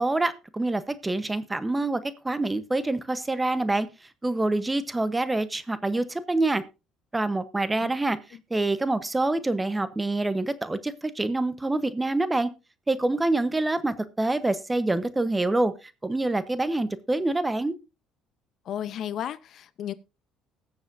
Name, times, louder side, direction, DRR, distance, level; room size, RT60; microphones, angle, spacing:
voice 1, 0.0-3.9 4.2-6.6 7.1-8.2 8.5-12.5 12.9-17.7, right 2 dB, 15° right, 0.9 m, -26 dB
voice 2, 18.7-19.9, left 10 dB, 55° left, 0.7 m, -33 dB
20.0 x 7.1 x 2.6 m
cardioid pair, 105°, 0 cm